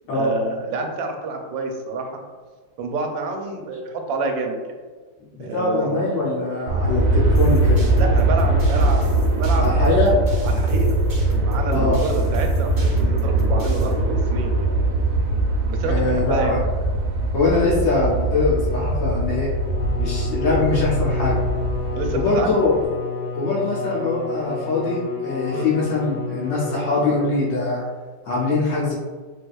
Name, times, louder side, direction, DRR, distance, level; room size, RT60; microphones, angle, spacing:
voice 1, 0.1-2.2 2.8-4.7 5.4-6.1 7.9-9.0 9.3-10.9 11.4-14.7 15.7-16.6 21.9-22.7 25.5-25.7, right 3 dB, 90° right, 3 dB, 1.3 m, -28 dB
voice 2, 5.3-7.9 8.5-8.6 9.6-10.1 11.7-12.0 15.8-16.6 17.3-19.5 20.0-21.4 22.1-22.8 23.3-27.8 28.2-28.9, left 3 dB, 75° left, -6 dB, 1.3 m, -22 dB
Aircraft, 6.7-22.9, right 2 dB, 70° right, 0.9 m, -21 dB
sound 1, 7.3-13.9, right 3 dB, 30° right, 0.4 m, -33 dB
Bowed string instrument, 19.5-27.8, left 4 dB, 60° left, 1.4 m, -30 dB
3.3 x 3.2 x 2.3 m, 1.4 s
omnidirectional pair, 2.0 m